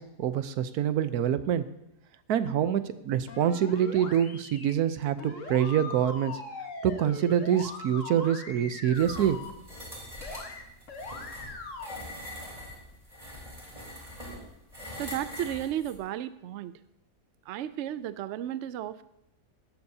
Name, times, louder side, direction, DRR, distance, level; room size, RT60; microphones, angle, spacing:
voice 1, 0.0-1.6 2.3-6.4 6.8-9.4, right 9 dB, 70° right, 12 dB, 1.2 m, -26 dB
sound 1, 3.3-4.7 5.2-9.5 10.2-10.6 10.9-12.0, left 3 dB, 50° left, 1.6 m, -41 dB
sound 2, 8.9-16.0, equal, 20° right, 3.6 m, -43 dB
voice 2, 15.0-16.8 17.5-19.0, right 11 dB, 90° right, 14 dB, 0.6 m, -34 dB
16.5 x 12.5 x 2.7 m, 0.90 s
omnidirectional pair, 1.8 m